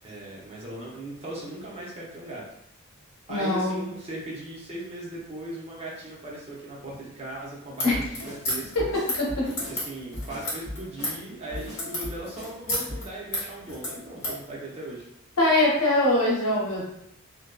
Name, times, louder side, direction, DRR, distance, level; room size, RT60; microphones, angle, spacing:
voice 1, 0.0-2.4 3.3-8.9 9.4-15.0, right 1 dB, 25° right, -5 dB, 0.6 m, -38 dB
voice 2, 3.3-3.8 7.8-7.9 9.2-9.5 15.4-16.8, left 1 dB, 85° left, -4 dB, 0.9 m, -22 dB
sound 1, 7.8-14.4, left 1 dB, 60° left, 1.1 m, -33 dB
Drum kit, 7.9-8.4 8.8-9.8 10.1-11.2 11.5-12.6 12.9-13.1, left 1 dB, ahead, 1.4 m, -38 dB
2.6 x 2.1 x 2.2 m, 0.74 s
head